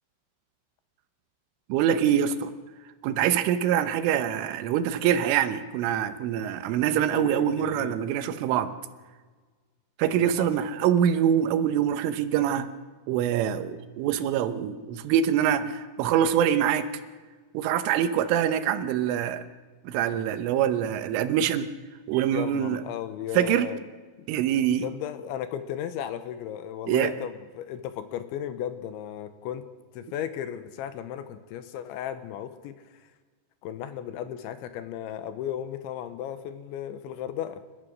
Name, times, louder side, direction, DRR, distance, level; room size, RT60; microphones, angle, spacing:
voice 1, 1.7-2.5 3.0-8.7 10.0-12.7 13.1-16.9 17.6-19.4 19.9-21.7 22.1-22.8 23.4-23.7 24.3-24.9 26.9-27.1, right 9 dB, 80° right, 11 dB, 3.5 m, -24 dB
voice 2, 7.1-8.0 10.1-10.5 22.3-23.8 24.2-24.3 24.8-29.7 29.9-33.0 33.6-37.6, left 10 dB, 80° left, 11 dB, 3.2 m, -35 dB
29.0 x 14.0 x 6.4 m, 1.4 s
omnidirectional pair, 5.7 m